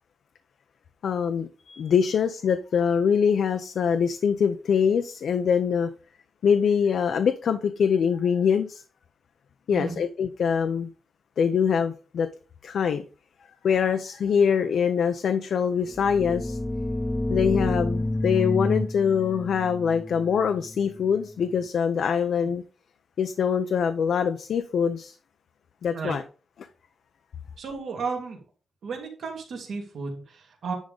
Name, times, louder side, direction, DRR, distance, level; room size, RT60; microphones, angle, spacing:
voice 1, 1.0-5.9 6.4-8.8 9.7-10.9 11.4-12.3 12.6-13.0 13.6-16.6 17.3-22.6 23.2-25.2 25.8-26.2, left 7 dB, 65° left, 0.6 m, -24 dB
sound 1, 15.9-21.5, left 1 dB, 10° left, 0.3 m, -29 dB
voice 2, 27.6-28.4 28.8-30.7, right 4 dB, 65° right, 2.5 m, -33 dB
10.5 x 3.7 x 5.2 m
wide cardioid pair, 160°, 0 cm